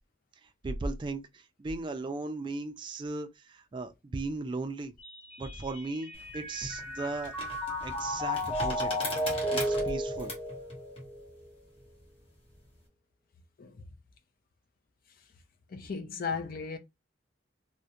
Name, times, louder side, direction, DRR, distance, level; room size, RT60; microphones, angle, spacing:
voice 1, 0.6-3.3 3.7-4.9 5.4-7.3 7.8-8.9 9.5-10.3, right 3 dB, 25° right, 0.3 m, -36 dB
Mallet percussion, 5.0-11.5, equal, 10° left, 0.8 m, -34 dB
sound 1, 6.1-12.8, left 1 dB, 30° left, 1.0 m, -41 dB
voice 2, 15.7-16.8, left 5 dB, 50° left, 0.4 m, -36 dB
2.4 x 2.1 x 2.8 m
head